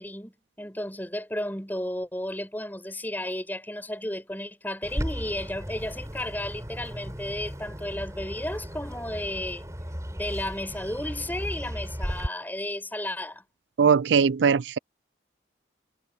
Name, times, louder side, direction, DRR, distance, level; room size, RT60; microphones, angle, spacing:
voice 1, 0.0-9.6 10.1-13.4, left 1 dB, 10° left, 7.1 m, -33 dB
Bird, 4.8-12.3, equal, 15° right, 7.7 m, -35 dB
voice 2, 13.8-14.8, right 6 dB, 75° right, 0.4 m, -20 dB
head